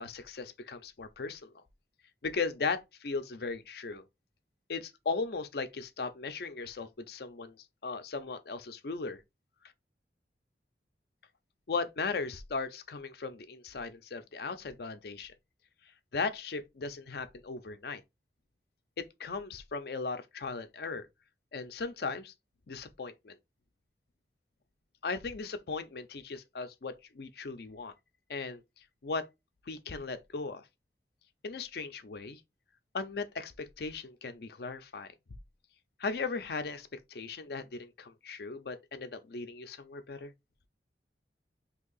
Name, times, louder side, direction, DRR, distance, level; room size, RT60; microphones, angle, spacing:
voice 1, 0.0-1.5 2.2-4.0 4.7-7.6 7.8-9.2 11.7-15.3 16.1-18.0 19.0-21.1 21.5-22.3 22.7-23.4 25.0-27.9 28.3-28.6 29.0-29.2 29.7-30.6 31.4-32.4 32.9-35.1 36.0-40.3, left 4 dB, 60° left, 0.5 m, -37 dB
2.9 x 2.7 x 3.9 m
head